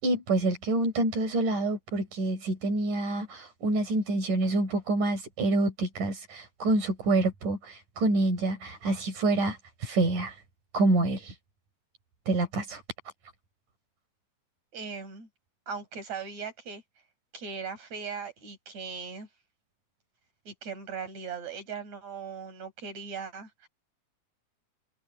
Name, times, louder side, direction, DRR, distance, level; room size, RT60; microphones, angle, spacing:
voice 1, 0.0-10.4 10.7-11.3 12.3-12.8, right 2 dB, 85° right, 6.2 m, -27 dB
voice 2, 14.7-15.3 15.7-16.8 17.3-19.3 20.5-23.7, right 5 dB, 60° right, 7.5 m, -39 dB
omnidirectional pair, 3.5 m